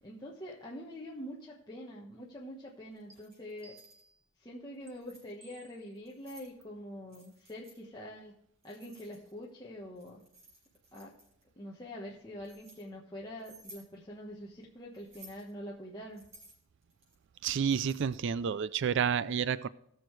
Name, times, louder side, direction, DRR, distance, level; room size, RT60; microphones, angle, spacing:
voice 1, 0.0-3.8 4.4-8.3 8.6-10.2 10.9-11.1 11.6-16.2, equal, 20° left, 1.2 m, -45 dB
Keys jangling, 3.0-4.0 4.7-5.3 6.0-6.5 7.1-7.8 8.6-9.5 10.0-11.4 12.1-12.8 13.4-13.9 14.9-15.5 16.1-18.3, right 2 dB, 30° right, 4.3 m, -57 dB
sound 1, 3.1-3.2 3.6-4.2 4.9-5.0 5.4-5.9 6.6-6.7 7.1-7.4, right 4 dB, 15° right, 1.1 m, -59 dB
voice 2, 17.4-19.7, right 7 dB, 55° right, 0.4 m, -30 dB
18.5 x 6.5 x 3.2 m
head